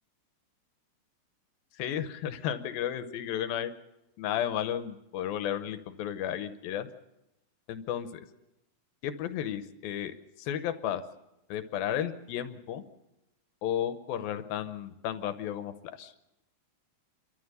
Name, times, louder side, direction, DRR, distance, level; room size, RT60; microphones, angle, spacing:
voice 1, 1.8-3.7 4.2-6.9 7.7-8.3 9.0-11.0 11.5-12.8 13.6-16.1, left 10 dB, 85° left, 10 dB, 2.8 m, -33 dB
29.5 x 13.5 x 6.8 m, 0.93 s
omnidirectional pair, 4.1 m